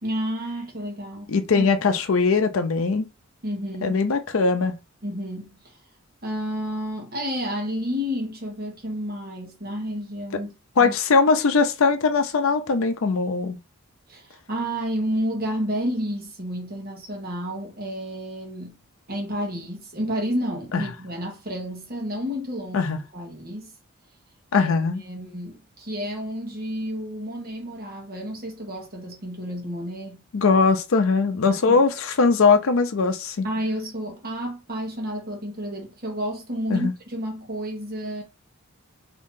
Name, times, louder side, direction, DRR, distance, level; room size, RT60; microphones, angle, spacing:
voice 1, 0.0-1.7 3.4-4.0 5.0-5.6 6.2-10.5 10.8-10.9 14.1-18.8 19.1-23.7 24.5-24.7 25.0-30.2 31.5-31.8 33.4-38.2, equal, 45° right, 1.2 m, -31 dB
voice 2, 1.3-3.1 3.8-4.8 10.8-13.6 20.7-20.8 22.7-23.0 24.5-25.0 30.3-33.5 36.7-36.9, left 4 dB, 65° left, 0.5 m, -20 dB
2.9 x 2.7 x 3.7 m
head